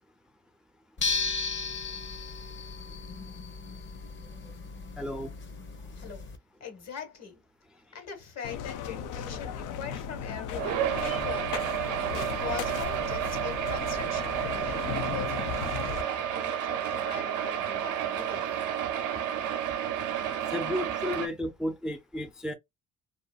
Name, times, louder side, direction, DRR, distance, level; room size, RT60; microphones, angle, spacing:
sound 1, 1.0-6.4, left 4 dB, 40° left, 0.8 m, -35 dB
voice 1, 5.0-5.3 11.1-11.2 12.0-12.1 20.3-22.5, left 1 dB, 5° right, 0.4 m, -33 dB
voice 2, 5.9-6.3 6.6-7.4 7.9-11.6 12.1-18.6, left 7 dB, 60° left, 1.4 m, -42 dB
sound 2, 8.4-16.0, left 7 dB, 85° left, 0.5 m, -36 dB
sound 3, 10.5-21.3, right 10 dB, 90° right, 0.6 m, -31 dB
2.6 x 2.5 x 2.2 m
cardioid pair, 90°, 30 cm